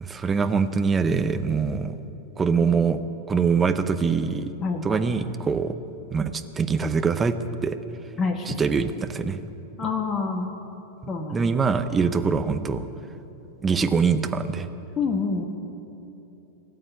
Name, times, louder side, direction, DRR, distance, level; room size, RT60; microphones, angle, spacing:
voice 1, 0.0-1.9 2.4-3.0 3.3-4.5 4.8-5.7 6.1-7.3 7.6-7.8 8.4-9.4 11.3-12.8 13.6-14.7, right 5 dB, 15° right, 9 dB, 0.8 m, -23 dB
voice 2, 4.6-5.0 8.2-8.5 9.8-10.5 11.1-11.5 15.0-15.4, left 4 dB, 25° left, 3 dB, 1.2 m, -27 dB
18.5 x 7.8 x 9.9 m, 2.9 s
figure-of-eight pair, 90°, 0 cm